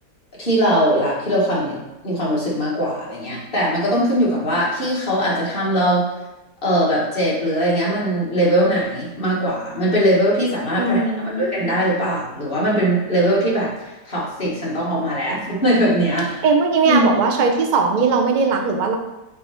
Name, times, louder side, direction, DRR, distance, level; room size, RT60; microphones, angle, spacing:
voice 1, 0.4-1.8 2.0-6.1 6.6-11.0 11.4-13.7 14.1-16.4 16.9-17.1, equal, 35° left, -6 dB, 1.8 m, -20 dB
voice 2, 10.8-11.4 16.4-19.0, right 4 dB, 55° right, 3 dB, 0.5 m, -19 dB
6.6 x 3.5 x 4.3 m, 1.0 s
omnidirectional pair, 1.8 m